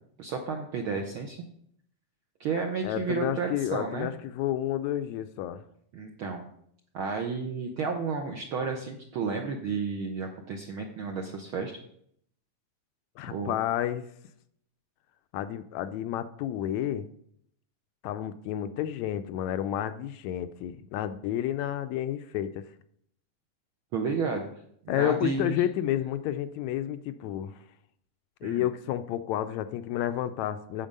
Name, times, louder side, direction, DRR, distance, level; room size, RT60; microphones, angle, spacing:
voice 1, 0.2-1.4 2.4-4.1 5.9-6.5 6.9-11.7 13.3-13.5 23.9-24.5 24.8-25.5 28.4-28.6, right 5 dB, 70° right, 3 dB, 1.2 m, -32 dB
voice 2, 2.8-5.6 13.2-14.0 15.3-17.1 18.0-22.7 24.9-27.6 28.4-30.9, left 11 dB, 80° left, 11 dB, 1.7 m, -30 dB
8.8 x 7.2 x 5.3 m, 0.69 s
omnidirectional pair, 3.4 m